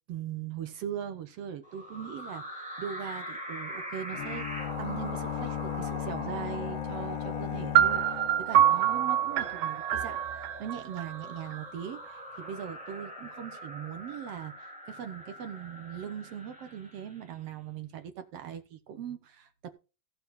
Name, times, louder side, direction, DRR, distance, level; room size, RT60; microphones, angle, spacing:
voice 1, 0.1-4.5 4.8-19.7, right 9 dB, 70° right, 1.5 m, -40 dB
sound 1, 1.6-17.3, equal, ahead, 2.6 m, -42 dB
sound 2, 4.1-9.1, left 13 dB, 80° left, 2.6 m, -37 dB
sound 3, 7.7-11.6, right 11 dB, 85° right, 1.4 m, -26 dB
15.5 x 6.9 x 4.1 m
omnidirectional pair, 4.0 m